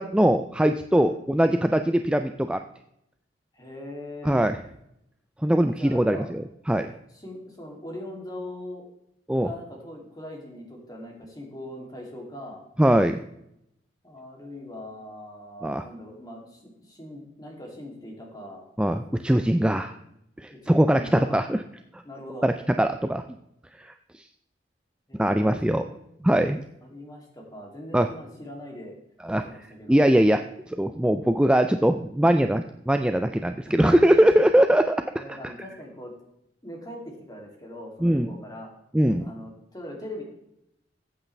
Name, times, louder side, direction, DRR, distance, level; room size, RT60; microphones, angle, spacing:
voice 1, 0.0-2.6 4.2-4.6 5.4-6.9 9.3-9.5 12.8-13.2 15.6-15.8 18.8-20.0 20.4-21.6 22.4-23.2 23.8-23.9 25.2-25.8 26.2-26.6 27.9-28.1 29.2-29.4 29.9-30.4 30.7-35.5 38.0-38.3 38.9-39.3, right 1 dB, 5° right, 8 dB, 0.4 m, -21 dB
voice 2, 3.5-4.4 5.8-6.3 7.1-8.8 9.4-12.6 14.0-18.6 20.5-21.4 22.0-22.5 25.1-26.0 26.8-28.9 29.4-30.2 33.7-33.9 35.2-36.1 36.6-38.7 39.2-40.2, left 1 dB, 20° left, 0 dB, 2.6 m, -41 dB
14.5 x 8.3 x 3.3 m, 0.79 s
head